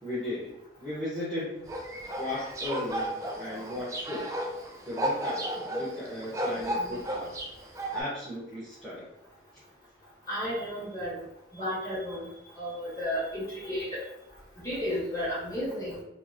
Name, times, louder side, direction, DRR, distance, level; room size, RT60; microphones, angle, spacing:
voice 1, 0.0-1.7 2.2-4.3 4.8-5.4 5.7-7.4 7.9-9.1, left 1 dB, ahead, -11 dB, 0.7 m, -36 dB
sound 1, 1.7-8.0, equal, 15° right, 0.3 m, -33 dB
voice 2, 10.3-11.2 11.5-12.3 12.6-13.9 14.6-16.0, equal, 20° left, -9 dB, 1.3 m, -33 dB
2.9 x 2.4 x 2.4 m, 0.85 s
head